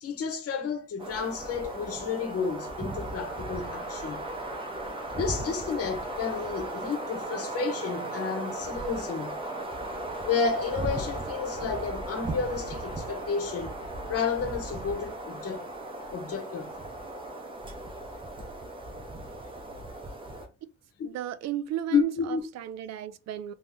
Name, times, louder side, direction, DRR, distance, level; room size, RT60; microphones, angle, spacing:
voice 1, 0.0-4.2 5.2-9.3 10.2-13.7 14.1-15.7 16.1-16.8 21.0-21.1 21.9-22.4, left 6 dB, 45° left, 1.0 m, -31 dB
sound 1, 1.0-20.5, right 2 dB, 15° right, 0.7 m, -36 dB
voice 2, 21.0-23.5, right 12 dB, 50° right, 0.4 m, -34 dB
2.9 x 2.7 x 3.5 m
cardioid pair, 150°, 34 cm